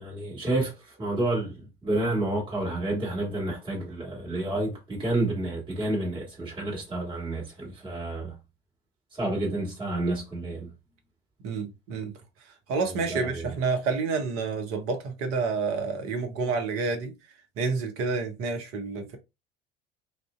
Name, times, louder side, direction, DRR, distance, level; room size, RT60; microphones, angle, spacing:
voice 1, 0.0-8.3 9.1-10.7 12.9-13.6, right 2 dB, 15° right, 1.4 m, -30 dB
voice 2, 11.4-12.1 12.7-17.1 17.6-19.2, right 4 dB, 45° right, 0.8 m, -29 dB
2.5 x 2.1 x 2.3 m
figure-of-eight pair, 70°, 31 cm